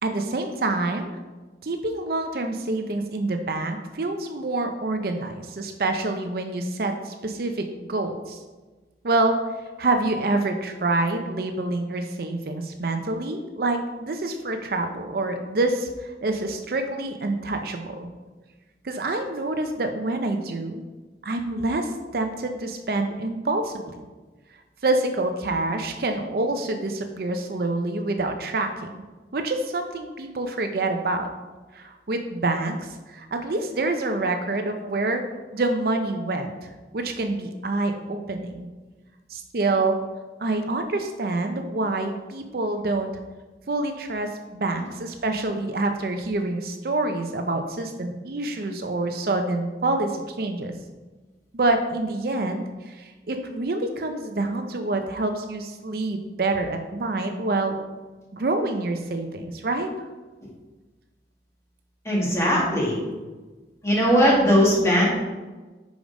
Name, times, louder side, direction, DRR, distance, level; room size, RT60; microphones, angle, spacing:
voice 1, 0.0-1.1 1.6-8.4 9.0-9.4 9.8-18.1 18.8-20.8 21.2-24.0 24.8-28.9 29.3-31.3 31.7-35.2 35.5-36.5 36.9-38.7 39.3-40.0 40.4-43.1 43.7-50.7 51.5-57.8 58.3-59.9, right 2 dB, 55° right, 5 dB, 0.5 m, -27 dB
voice 2, 62.0-63.0 63.8-65.1, equal, 15° left, -4 dB, 1.6 m, -19 dB
5.1 x 5.0 x 5.0 m, 1.2 s
head